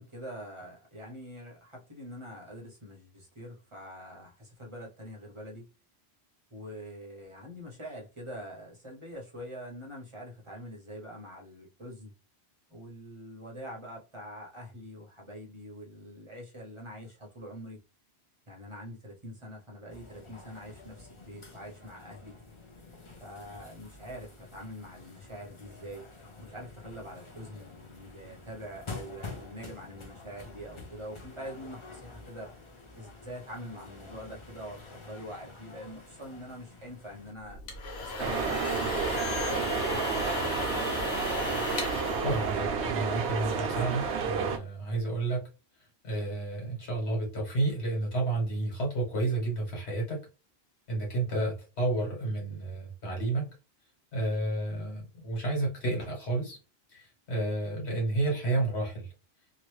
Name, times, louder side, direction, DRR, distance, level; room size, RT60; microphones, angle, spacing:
voice 1, 0.0-5.7 6.5-12.1 12.7-17.8 18.5-22.3 23.2-26.1 26.4-32.5 32.9-37.6 38.0-40.6, equal, 30° right, -1 dB, 0.8 m, -44 dB
sound 1, 19.9-37.3, left 3 dB, 35° left, 0.6 m, -48 dB
sound 2, 37.5-43.2, left 3 dB, 75° left, 1.1 m, -35 dB
sound 3, 38.2-44.6, right 5 dB, 90° right, 1.0 m, -31 dB
voice 2, 42.2-45.4 46.0-50.2 50.9-53.5 54.1-56.6 56.9-59.1, right 2 dB, 90° left, -2 dB, 1.7 m, -31 dB
3.0 x 2.5 x 3.1 m, 0.31 s
omnidirectional pair, 1.1 m